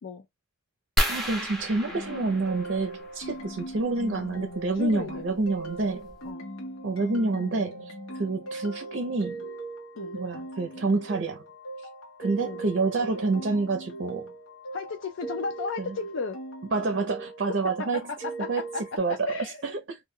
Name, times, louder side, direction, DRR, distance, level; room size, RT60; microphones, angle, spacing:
sound 1, 1.0-3.3 4.9-5.1 5.7-5.8 6.1-6.3, equal, ahead, 0.6 m, -31 dB
voice 1, 1.1-6.1 6.8-9.4 10.1-11.4 12.2-14.3 15.8-16.0 16.7-18.1 18.5-18.6 19.0-20.0, right 3 dB, 55° right, 0.5 m, -28 dB
sound 2, 1.9-19.0, right 2 dB, 75° left, 0.9 m, -40 dB
voice 2, 4.7-5.2 6.2-6.4 10.0-10.2 12.4-12.6 14.7-16.4 17.8-19.7, left 4 dB, 60° left, 0.3 m, -35 dB
2.2 x 2.1 x 3.5 m
head